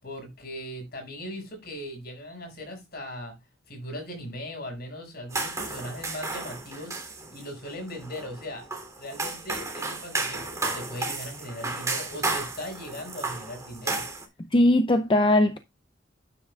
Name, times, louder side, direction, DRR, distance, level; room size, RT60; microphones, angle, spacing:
voice 1, 0.0-3.4 3.7-7.0 7.3-8.7 9.0-14.0, equal, 55° left, 6.5 m, -39 dB
sound 1, 5.3-14.2, right 3 dB, 15° right, 3.2 m, -33 dB
voice 2, 14.5-15.6, left 1 dB, 25° left, 0.6 m, -20 dB
12.0 x 9.9 x 2.4 m
head